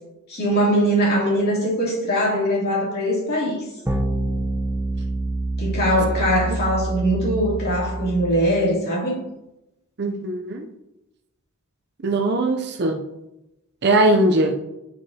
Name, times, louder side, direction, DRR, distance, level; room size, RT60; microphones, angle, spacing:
voice 1, 0.3-3.6 5.6-9.2, equal, 45° left, -5 dB, 2.7 m, -21 dB
sound 1, 3.9-8.6, right 2 dB, 10° right, 0.7 m, -26 dB
voice 2, 10.0-10.7 12.0-13.0 13.8-14.6, right 2 dB, 50° right, 4 dB, 0.5 m, -20 dB
9.0 x 5.2 x 2.8 m, 0.90 s
head